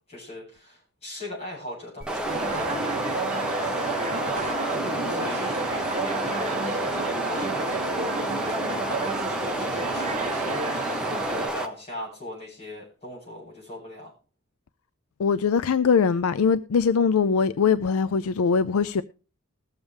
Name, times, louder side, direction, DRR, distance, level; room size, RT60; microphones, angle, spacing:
voice 1, 0.1-7.8 8.4-10.3 10.6-14.1, left 1 dB, 30° left, 7.4 m, -40 dB
sound 1, 2.0-11.7, right 1 dB, 5° right, 1.0 m, -30 dB
sound 2, 2.2-11.5, right 3 dB, 30° right, 1.3 m, -31 dB
voice 2, 15.2-19.0, left 6 dB, 75° left, 0.4 m, -22 dB
21.0 x 7.2 x 3.3 m
head